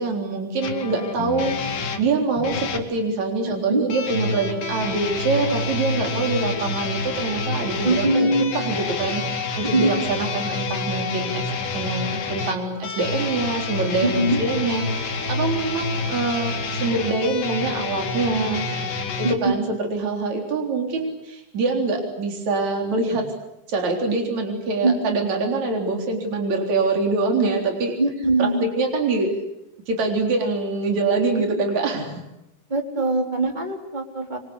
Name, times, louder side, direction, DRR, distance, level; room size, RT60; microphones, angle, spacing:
voice 1, 0.0-8.3 8.5-9.2 9.6-11.4 11.7-18.7 19.2-23.2 23.7-27.9 28.4-29.4 29.9-32.2, right 3 dB, 60° right, 2 dB, 5.1 m, -24 dB
sound 1, 0.6-2.9 3.9-19.3, left 4 dB, 80° left, 3.9 m, -28 dB
voice 2, 3.4-3.8 7.8-8.5 9.6-9.9 14.0-14.4 19.2-19.5 24.8-25.0 28.0-28.7 31.4-31.5 32.7-34.4, right 2 dB, 15° right, 3 dB, 3.7 m, -22 dB
27.5 x 24.0 x 8.4 m, 0.86 s
omnidirectional pair, 3.6 m